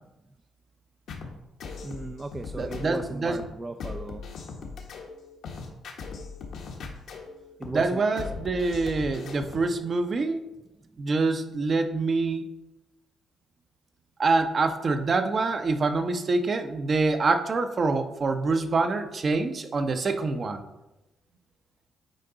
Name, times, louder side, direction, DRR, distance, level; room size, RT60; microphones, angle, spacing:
sound 1, 1.1-9.7, left 4 dB, 75° left, 1.3 m, -39 dB
voice 1, 1.8-4.2 4.6-4.7 7.6-8.4, right 2 dB, 25° right, 6 dB, 0.4 m, -37 dB
voice 2, 2.6-3.4 7.7-10.5 11.0-12.5 14.2-20.6, right 3 dB, 40° right, 7 dB, 0.8 m, -26 dB
9.2 x 4.5 x 3.9 m, 0.96 s
cardioid pair, 90°, 0 cm